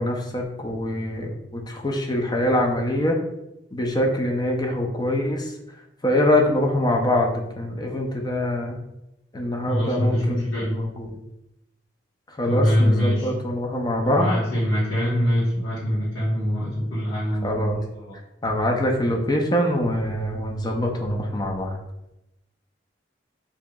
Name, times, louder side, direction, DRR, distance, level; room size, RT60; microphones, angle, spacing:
voice 1, 0.0-3.2 3.7-5.5 6.0-8.8 9.3-10.4 10.7-11.1 12.4-14.3 17.4-17.8 18.4-21.8, left 1 dB, 20° left, 1 dB, 0.5 m, -24 dB
voice 2, 9.6-10.7 12.4-13.3 14.0-18.1, equal, 75° left, -9 dB, 1.2 m, -23 dB
4.8 x 2.8 x 2.3 m, 0.89 s
head